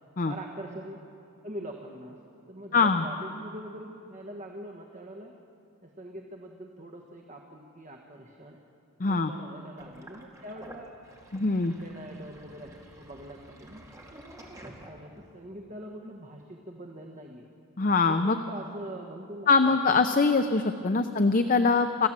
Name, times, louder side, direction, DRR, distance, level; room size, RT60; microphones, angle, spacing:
voice 1, 0.3-1.0 1.4-2.2 2.5-5.3 5.8-8.6 9.1-11.0 11.5-17.4 18.0-20.2 21.0-21.2, right 1 dB, 35° right, 2 dB, 1.4 m, -43 dB
voice 2, 2.7-3.1 9.0-9.3 11.3-11.7 17.8-18.4 19.5-22.1, left 4 dB, 40° left, 8 dB, 0.6 m, -23 dB
Sink (filling or washing), 9.8-15.3, right 1 dB, 15° right, 2.2 m, -50 dB
27.0 x 15.0 x 7.5 m, 2.6 s
head